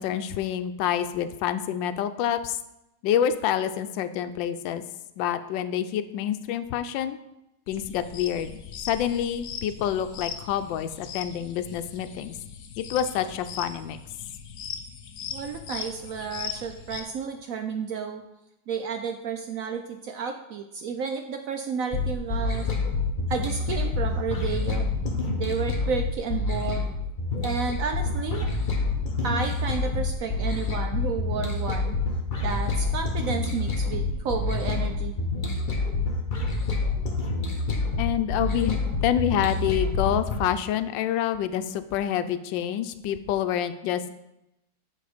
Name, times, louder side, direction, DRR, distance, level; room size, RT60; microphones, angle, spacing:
voice 1, 0.0-2.6 3.0-4.8 5.2-7.2 7.7-12.3 12.8-14.0 38.0-44.1, left 10 dB, 90° left, 11 dB, 1.3 m, -27 dB
sound 1, 7.7-17.0, left 7 dB, 60° left, 1.1 m, -39 dB
voice 2, 15.3-18.2 18.7-22.7 23.3-24.9 25.4-26.9 27.4-28.5 29.2-32.0 32.4-35.1, right 6 dB, 75° right, 5 dB, 0.8 m, -31 dB
sound 2, 21.9-40.4, left 3 dB, 35° left, 0.9 m, -27 dB
8.4 x 4.3 x 5.0 m, 0.88 s
omnidirectional pair, 2.0 m